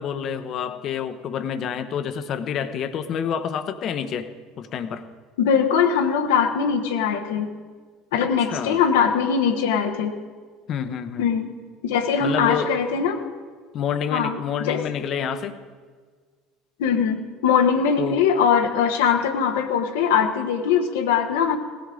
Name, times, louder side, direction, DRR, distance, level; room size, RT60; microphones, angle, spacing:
voice 1, 0.0-4.3 4.6-5.0 8.5-8.8 10.7-11.3 12.2-12.7 13.7-15.6 18.0-18.2, left 7 dB, 45° left, 10 dB, 1.0 m, -28 dB
voice 2, 5.4-7.5 8.1-10.2 11.2-11.5 11.8-13.2 14.1-14.8 16.8-21.6, left 7 dB, 70° left, 4 dB, 1.1 m, -21 dB
18.5 x 14.0 x 3.8 m, 1.5 s
figure-of-eight pair, 65°, 0 cm